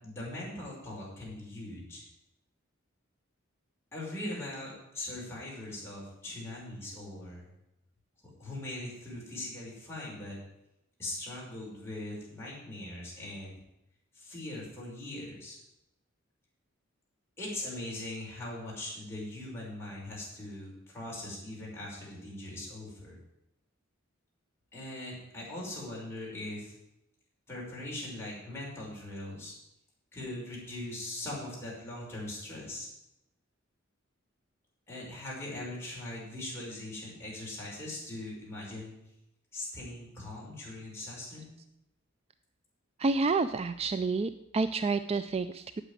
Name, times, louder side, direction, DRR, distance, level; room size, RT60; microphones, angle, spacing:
voice 1, 0.0-2.0 3.9-7.5 8.4-10.4 11.0-13.6 14.1-15.6 17.4-23.2 24.7-26.7 27.5-29.5 30.1-32.9 34.9-38.9 39.5-41.5, left 1 dB, 15° left, -6 dB, 5.7 m, -40 dB
voice 2, 43.0-45.8, right 3 dB, 30° right, 11 dB, 0.4 m, -29 dB
9.0 x 8.1 x 9.2 m, 0.86 s
head